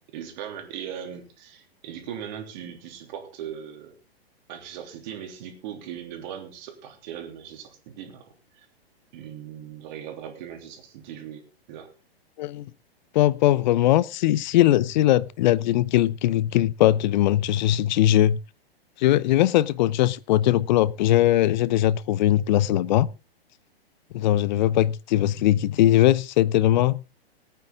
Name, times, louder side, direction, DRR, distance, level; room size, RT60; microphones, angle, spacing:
voice 1, 0.1-4.0 4.5-8.2 8.5-8.7 9.1-11.4 11.7-11.9, right 9 dB, 45° right, 3.3 m, -39 dB
voice 2, 12.4-12.7 13.1-18.4 19.0-23.1 24.1-27.0, left 13 dB, 45° left, 0.6 m, -20 dB
18.0 x 9.2 x 3.7 m
hypercardioid pair, 120°, 31 cm